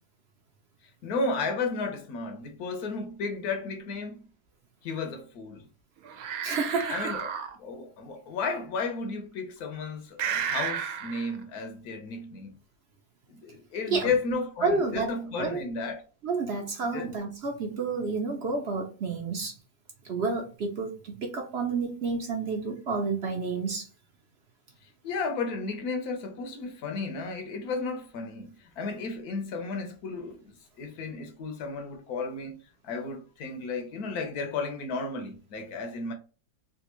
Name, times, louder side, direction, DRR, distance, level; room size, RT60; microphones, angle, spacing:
voice 1, 1.0-4.2 4.8-5.7 6.9-12.6 13.3-16.0 16.8-17.1 25.0-32.6 32.8-36.1, left 4 dB, 85° left, 1.3 m, -33 dB
sound 1, 5.0-5.1 6.0-7.6 10.2-11.4, right 8 dB, 80° right, 1.1 m, -32 dB
voice 2, 6.4-7.1 13.9-14.1 14.6-15.6 16.2-19.5 20.0-23.9, right 4 dB, 55° right, 0.8 m, -30 dB
3.4 x 2.5 x 3.0 m
omnidirectional pair, 1.5 m